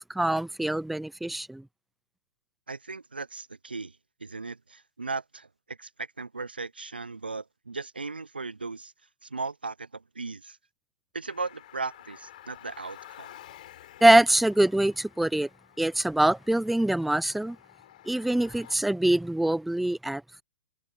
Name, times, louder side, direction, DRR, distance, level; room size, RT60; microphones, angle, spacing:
voice 1, 0.0-1.6 14.0-15.5 15.8-17.6 18.1-20.4, right 1 dB, ahead, 0.4 m, -24 dB
voice 2, 2.7-8.9 9.2-10.6 11.1-13.3, right 4 dB, 90° right, 0.5 m, -37 dB
Car, 11.3-18.8, left 13 dB, 55° left, 5.7 m, -51 dB
figure-of-eight pair, 115°, 5 cm